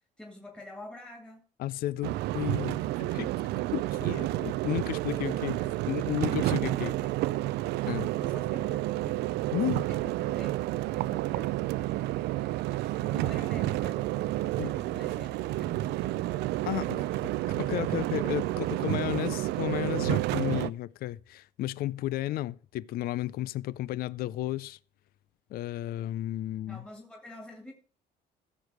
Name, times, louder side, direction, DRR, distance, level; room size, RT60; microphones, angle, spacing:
voice 1, 0.2-1.4 4.0-4.5 5.6-5.8 6.6-7.3 8.1-9.2 9.9-10.5 11.0-11.6 13.0-16.3 16.9-17.5 17.8-18.5 22.2-22.4 26.7-27.7, left 1 dB, 5° left, 2.1 m, -48 dB
voice 2, 1.6-3.3 3.7-5.6 5.9-6.9 7.9-8.1 9.5-9.9 14.6-14.7 16.7-17.0 17.6-24.8 25.5-26.8, left 14 dB, 60° left, 0.4 m, -33 dB
sound 1, 2.0-20.7, right 16 dB, 80° right, 0.4 m, -30 dB
15.5 x 6.6 x 4.8 m
cardioid pair, 110°, 17 cm